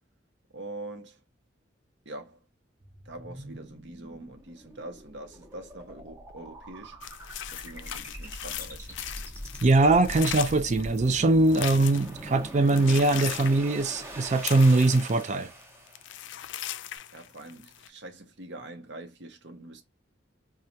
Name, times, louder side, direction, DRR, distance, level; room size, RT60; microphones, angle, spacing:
voice 1, 0.5-1.2 2.0-2.4 3.0-7.0 7.5-9.0 17.1-19.8, right 2 dB, 70° right, 0.9 m, -44 dB
sound 1, 2.8-16.2, right 1 dB, 15° right, 0.9 m, -43 dB
sound 2, 7.0-12.2 12.6-15.6 15.9-17.9, left 11 dB, 80° left, 0.4 m, -39 dB
voice 2, 9.6-15.5, right 2 dB, 40° right, 0.4 m, -22 dB
4.4 x 2.3 x 2.6 m
head